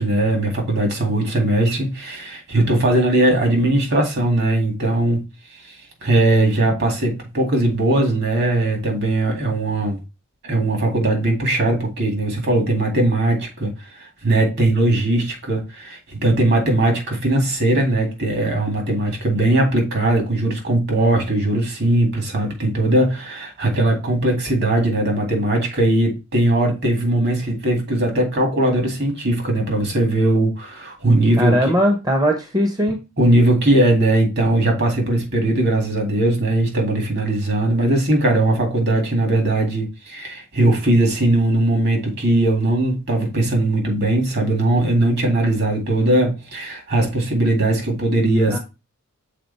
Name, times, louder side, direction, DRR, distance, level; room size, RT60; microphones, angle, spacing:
voice 1, 0.0-5.2 5.7-5.8 6.0-10.0 10.4-13.7 14.0-31.6 33.2-48.6, right 1 dB, 55° right, 2.2 m, -19 dB
voice 2, 31.4-33.0 48.5-48.6, equal, 20° right, 0.8 m, -19 dB
6.7 x 4.0 x 4.1 m
head